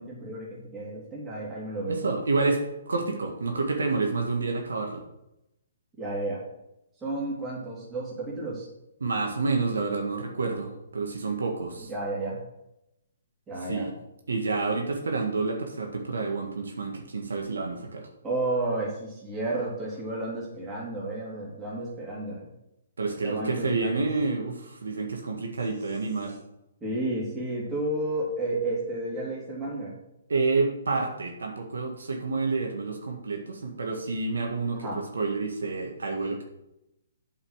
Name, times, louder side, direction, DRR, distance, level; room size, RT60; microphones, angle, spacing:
voice 1, 0.0-2.0 6.0-6.4 7.0-8.7 11.9-12.4 13.5-13.9 18.2-22.5 23.2-24.1 26.8-30.0 34.7-35.0, right 2 dB, 15° right, -6 dB, 3.0 m, -32 dB
voice 2, 1.9-5.0 9.0-11.9 13.7-13.9 14.3-18.1 23.0-26.4 30.3-36.4, right 3 dB, 80° right, 2 dB, 1.7 m, -29 dB
8.3 x 5.7 x 6.4 m, 0.86 s
hypercardioid pair, 135°, 0 cm